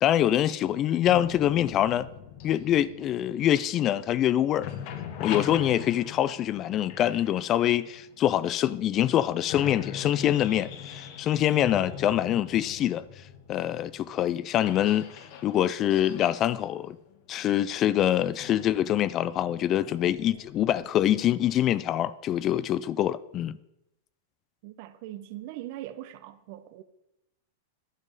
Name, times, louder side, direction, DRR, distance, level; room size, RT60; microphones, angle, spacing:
voice 1, 0.0-2.1 2.4-4.7 5.2-13.0 13.5-15.1 15.4-17.0 17.3-23.6, left 11 dB, 35° left, 0.4 m, -25 dB
sound 1, 1.0-4.2 4.5-8.4 9.0-9.1 9.5-20.8, left 8 dB, 55° left, 1.2 m, -41 dB
voice 2, 24.6-26.8, right 14 dB, 55° right, 0.7 m, -41 dB
11.0 x 5.4 x 5.3 m
hypercardioid pair, 115°, 0 cm